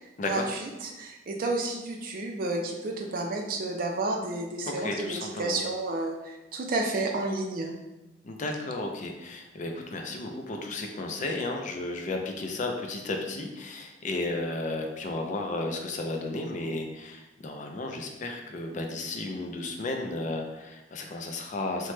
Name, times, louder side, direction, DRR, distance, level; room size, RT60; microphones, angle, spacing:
voice 1, 0.2-7.7, right 2 dB, 50° right, 2 dB, 0.4 m, -31 dB
voice 2, 4.7-5.6 8.2-21.9, left 2 dB, 45° left, 3 dB, 0.4 m, -33 dB
2.9 x 2.1 x 3.1 m, 1.0 s
head